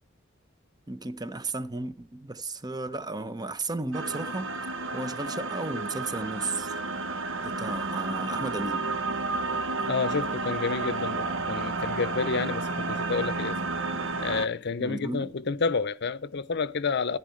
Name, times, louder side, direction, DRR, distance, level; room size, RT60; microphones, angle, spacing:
voice 1, 0.9-4.5 4.9-6.7 7.4-8.9 14.8-15.3, right 2 dB, 20° right, 0.8 m, -34 dB
sound 1, 3.9-14.5, right 3 dB, 75° right, 1.1 m, -31 dB
voice 2, 9.9-13.6 14.2-17.2, left 4 dB, 60° left, 0.7 m, -29 dB
13.5 x 4.6 x 7.7 m
head